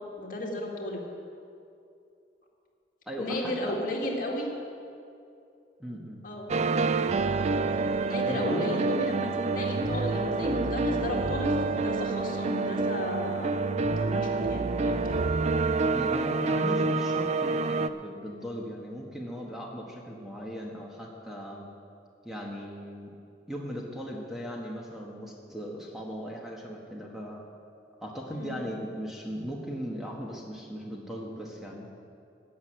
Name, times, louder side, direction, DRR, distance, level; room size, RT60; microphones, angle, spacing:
voice 1, 0.2-1.0 3.2-4.5 6.2-6.5 8.0-15.1 28.3-28.8, left 1 dB, 50° left, -1 dB, 2.0 m, -34 dB
voice 2, 3.1-3.8 5.8-6.2 8.3-8.7 15.9-21.7 22.2-23.1 23.5-27.4 28.0-31.9, equal, ahead, -2 dB, 1.3 m, -38 dB
sound 1, 6.5-17.9, right 3 dB, 40° right, 0.4 m, -27 dB
15.0 x 6.4 x 8.9 m, 2.6 s
head